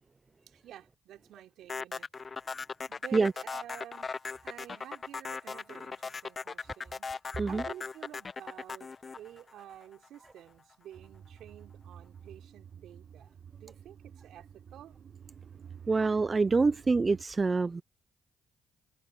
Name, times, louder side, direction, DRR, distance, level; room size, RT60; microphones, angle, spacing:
voice 1, 0.5-2.1 2.9-4.2 4.4-15.0, right 11 dB, 75° right, 3.4 m, -50 dB
sound 1, 1.7-10.1, left 4 dB, 40° left, 0.6 m, -38 dB
sound 2, 10.9-17.3, right 8 dB, 55° right, 1.6 m, -50 dB
voice 2, 15.9-17.8, right 4 dB, 35° right, 0.5 m, -26 dB
supercardioid pair, 55°, 0 cm